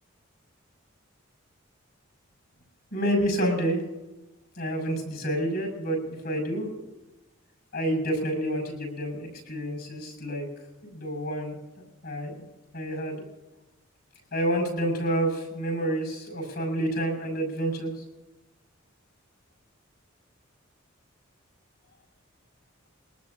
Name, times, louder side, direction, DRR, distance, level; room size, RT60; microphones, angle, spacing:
voice 1, 2.9-3.8 4.5-6.8 7.7-10.5 10.9-11.6 12.0-12.4 12.7-13.2 14.3-18.0, right 1 dB, 50° left, 2 dB, 6.4 m, -28 dB
23.5 x 19.0 x 2.8 m, 1.1 s
head